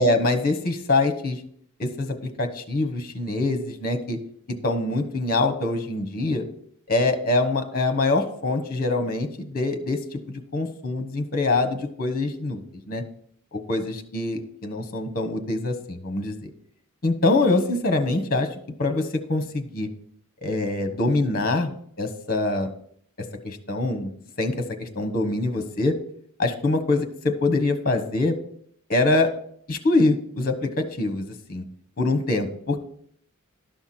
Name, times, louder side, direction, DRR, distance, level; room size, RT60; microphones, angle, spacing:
voice 1, 0.0-1.4 1.8-2.1 2.4-4.2 4.6-6.4 6.9-12.6 12.9-13.0 13.5-16.5 17.0-18.5 18.8-19.9 20.4-22.7 23.4-24.1 24.4-24.5 24.8-25.9 26.4-28.4 28.9-29.3 29.7-31.6 32.0-32.8, left 2 dB, 45° left, 7 dB, 1.2 m, -24 dB
11.5 x 5.8 x 4.4 m, 0.64 s
head